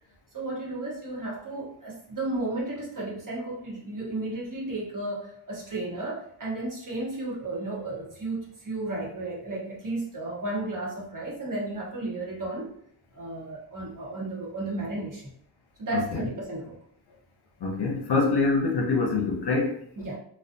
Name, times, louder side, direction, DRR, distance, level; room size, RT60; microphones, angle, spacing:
voice 1, 0.3-12.7 13.1-15.3 15.8-16.7 20.0-20.2, right 2 dB, 40° right, -4 dB, 1.0 m, -33 dB
voice 2, 15.9-16.3 17.6-20.1, left 3 dB, 55° left, 1 dB, 0.7 m, -25 dB
2.3 x 2.2 x 2.6 m, 0.65 s
cardioid pair, 65°, 48 cm